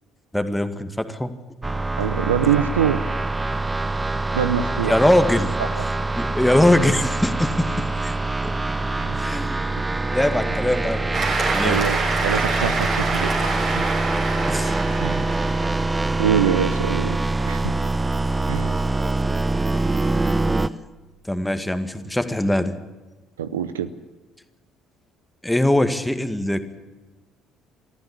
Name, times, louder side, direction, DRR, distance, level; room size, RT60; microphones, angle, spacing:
voice 1, 0.3-1.3 4.8-5.5 6.2-8.1 8.4-8.5 9.2-9.7 10.1-11.8 14.5-14.8 21.3-22.8 25.4-26.8, left 1 dB, 5° left, 9 dB, 2.0 m, -22 dB
sound 1, 1.6-20.7, right 2 dB, 15° right, 1.0 m, -24 dB
voice 2, 2.0-3.2 4.3-5.1 5.6-5.7 9.0-9.2 11.6-13.8 15.0-15.2 16.2-17.2 17.4-17.7 18.5-18.8 23.4-23.9, right 9 dB, 80° right, 13 dB, 0.8 m, -24 dB
Cheering / Applause, 11.1-16.0, right 3 dB, 50° right, 6.0 m, -26 dB
23.0 x 15.0 x 8.3 m, 1.2 s
figure-of-eight pair, 50°, 0 cm